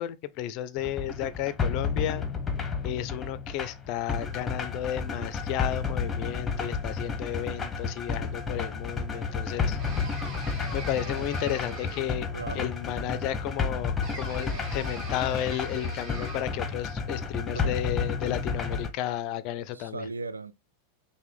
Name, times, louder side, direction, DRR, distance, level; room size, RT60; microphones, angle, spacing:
voice 1, 0.0-2.3 2.8-12.3 12.5-20.1, left 12 dB, 40° left, 0.4 m, -33 dB
sound 1, 0.8-18.9, left 5 dB, 15° left, 0.9 m, -31 dB
sound 2, 9.8-12.3 14.0-16.6, right 2 dB, 30° right, 1.8 m, -42 dB
voice 2, 12.3-12.7 17.5-17.7 19.7-20.5, right 3 dB, 75° right, 0.3 m, -37 dB
5.5 x 2.2 x 3.7 m
figure-of-eight pair, 90°, 0 cm